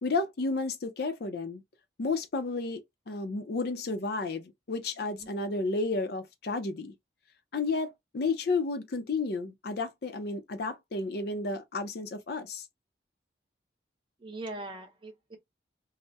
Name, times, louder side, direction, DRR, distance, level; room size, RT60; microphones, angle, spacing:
voice 1, 0.0-1.6 2.0-2.8 3.1-6.9 7.5-12.6, left 3 dB, 60° left, 0.5 m, -32 dB
voice 2, 14.2-15.4, right 2 dB, 25° right, 0.6 m, -41 dB
2.2 x 2.0 x 2.6 m
head